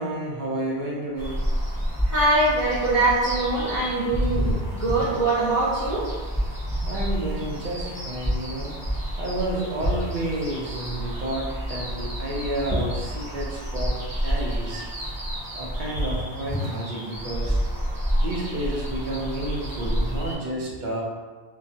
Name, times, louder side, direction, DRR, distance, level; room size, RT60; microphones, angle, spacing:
voice 1, 0.0-1.4 6.9-8.8 9.2-14.9 15.5-17.6 18.2-21.0, right 1 dB, 55° right, -4 dB, 0.6 m, -30 dB
sound 1, 1.2-20.4, equal, 20° right, 0.8 m, -29 dB
voice 2, 2.1-6.1 12.7-12.8, right 2 dB, 25° left, -12 dB, 0.4 m, -23 dB
2.2 x 2.2 x 2.6 m, 1.4 s
omnidirectional pair, 1.1 m